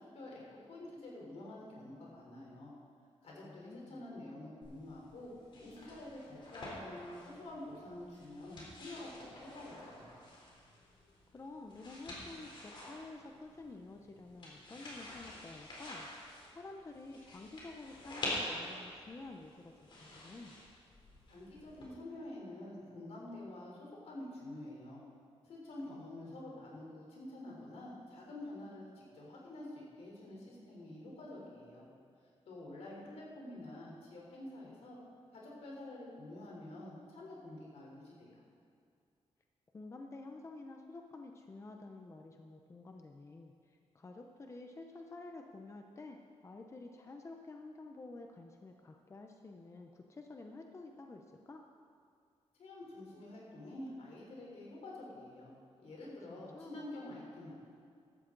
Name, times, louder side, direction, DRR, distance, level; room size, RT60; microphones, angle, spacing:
voice 1, 0.0-2.7 3.2-5.3 5.6-10.1 21.3-25.0 25.4-31.9 32.5-35.0 35.3-38.4 52.6-57.5, left 1 dB, 75° left, -3 dB, 3.8 m, -48 dB
voice 2, 3.4-4.0 11.3-16.1 16.5-19.7 20.0-20.5 25.9-26.6 39.7-46.2 46.4-51.6 56.3-56.8, left 3 dB, 25° left, 3 dB, 0.7 m, -50 dB
sound 1, 4.6-21.9, left 1 dB, 50° left, 3.7 m, -48 dB
15.0 x 12.5 x 3.9 m, 2.3 s
wide cardioid pair, 150°, 11 cm